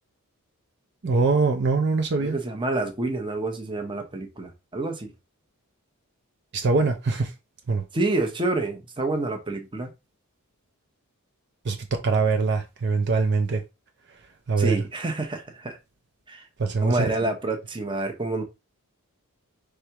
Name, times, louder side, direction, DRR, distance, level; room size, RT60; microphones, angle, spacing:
voice 1, 1.0-2.4 6.5-7.3 7.7-7.8 11.6-13.6 14.5-14.8 16.6-17.1, right 4 dB, 50° right, 0.6 m, -23 dB
voice 2, 2.2-5.1 7.9-9.9 14.6-15.8 16.3-16.4 16.8-18.4, right 2 dB, 20° right, 0.9 m, -28 dB
5.0 x 3.4 x 2.9 m
head